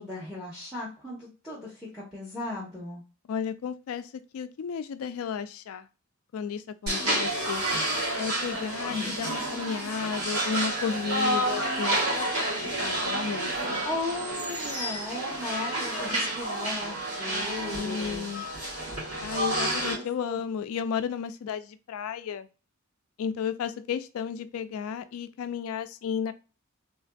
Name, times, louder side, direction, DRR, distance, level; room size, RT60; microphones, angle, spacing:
voice 1, 0.0-3.0 8.9-9.1 13.8-18.3 19.7-20.4, left 2 dB, ahead, 0.8 m, -36 dB
voice 2, 3.3-5.9 6.3-7.6 8.2-13.9 17.7-18.5 19.2-22.5 23.2-26.3, left 7 dB, 70° left, 0.3 m, -33 dB
sound 1, 6.9-19.9, right 1 dB, 85° right, 1.6 m, -30 dB
3.3 x 2.5 x 2.2 m
head